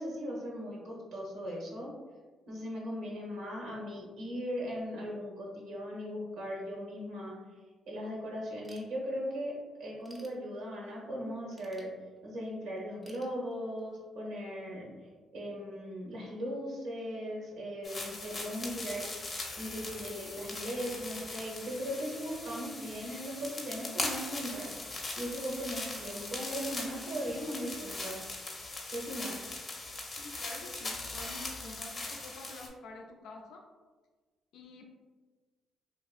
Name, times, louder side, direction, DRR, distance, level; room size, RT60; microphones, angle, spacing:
voice 1, 0.0-1.9 2.5-7.4 7.9-11.9 12.2-14.9 15.3-19.1 19.6-24.7 25.1-28.2 28.9-29.5, equal, 80° right, -3 dB, 0.8 m, -38 dB
Ratchet pawl / Tools, 8.6-9.4 9.8-11.0 11.5-12.5 13.0-14.0, equal, 10° right, 0.5 m, -58 dB
sound 1, 17.8-32.7, left 2 dB, 35° left, 0.6 m, -40 dB
voice 2, 30.1-33.6 34.5-34.8, left 2 dB, 80° left, 2 dB, 0.3 m, -48 dB
2.7 x 2.4 x 2.4 m, 1.4 s
cardioid pair, 90°, 0 cm